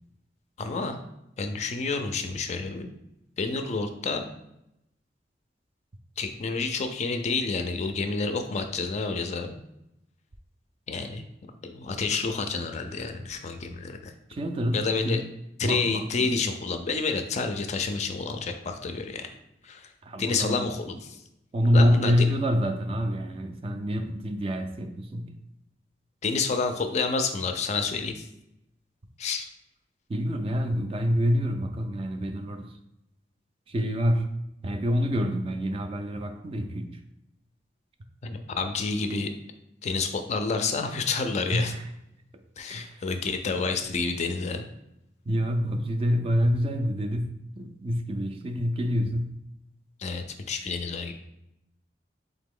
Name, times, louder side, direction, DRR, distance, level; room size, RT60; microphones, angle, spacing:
voice 1, 0.6-1.0 1.4-2.9 3.4-4.2 6.2-9.6 10.9-11.2 11.6-14.1 14.7-15.2 15.6-19.3 19.6-19.9 20.2-21.2 21.7-22.3 26.2-28.3 29.2-29.5 38.2-39.3 39.8-41.7 42.6-44.6 50.0-51.1, left 4 dB, 40° left, 7 dB, 0.4 m, -29 dB
voice 2, 14.3-15.2 15.6-16.3 20.0-20.7 21.5-25.3 30.1-32.7 33.7-34.3 34.6-37.0 41.5-41.9 42.7-43.0 45.3-49.3, equal, 30° right, 7 dB, 0.3 m, -26 dB
3.7 x 2.9 x 3.7 m, 0.84 s
head